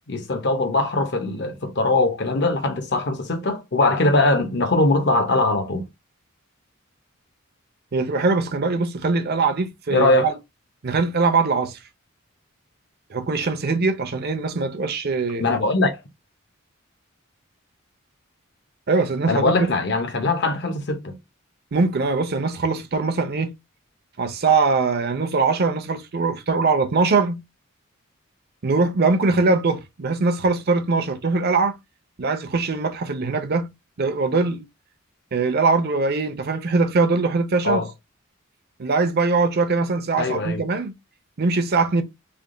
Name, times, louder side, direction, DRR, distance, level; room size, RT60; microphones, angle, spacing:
voice 1, 0.1-5.8 9.9-10.3 15.4-15.9 19.3-21.1 37.6-37.9 40.2-40.6, left 2 dB, 55° left, 0.8 m, -21 dB
voice 2, 7.9-10.3 10.8-11.8 13.1-15.4 18.9-19.7 21.7-23.5 24.2-27.4 28.6-31.8 32.2-33.7 34.0-34.6 35.3-37.9 38.8-40.9 41.4-42.0, right 4 dB, 50° right, 0.6 m, -22 dB
3.4 x 2.2 x 3.7 m
head